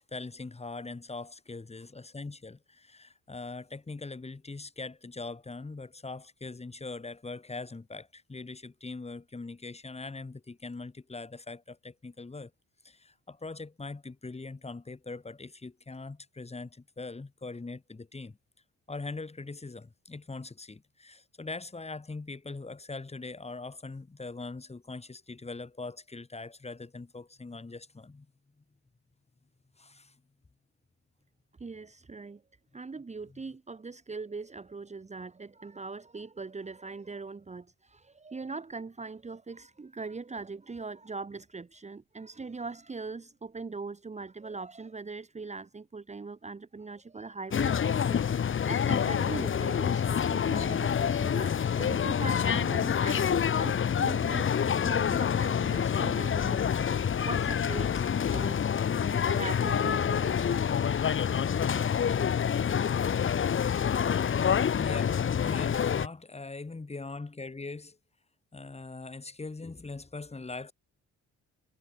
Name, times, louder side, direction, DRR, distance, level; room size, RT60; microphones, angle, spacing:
voice 1, 0.0-12.5 12.8-18.4 18.9-28.3 29.8-30.2 33.3-33.4 64.6-68.0 68.5-70.7, left 3 dB, 20° left, 3.4 m, -41 dB
voice 2, 31.6-32.4 32.7-56.7 57.2-58.8 59.1-60.6, right 4 dB, 20° right, 1.4 m, -41 dB
sound 1, 47.5-66.1, left 8 dB, 40° left, 1.2 m, -27 dB
cardioid pair, 90°, 30 cm